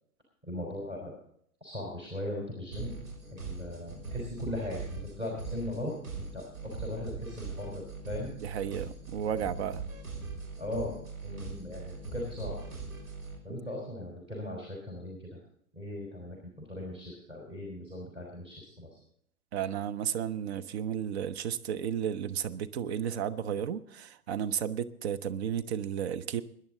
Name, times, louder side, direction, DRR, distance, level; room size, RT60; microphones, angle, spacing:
voice 1, 0.5-1.1 1.6-3.0 3.3-6.4 6.8-8.3 10.6-10.9 11.2-12.6 13.4-15.4 15.7-18.9, left 1 dB, 10° right, -3 dB, 4.3 m, -38 dB
sound 1, 2.7-13.4, right 4 dB, 65° right, 6.1 m, -41 dB
voice 2, 8.4-9.8 13.5-13.6 19.5-26.4, right 9 dB, 45° right, 11 dB, 0.9 m, -33 dB
21.0 x 10.5 x 3.9 m, 0.68 s
figure-of-eight pair, 105°, 44 cm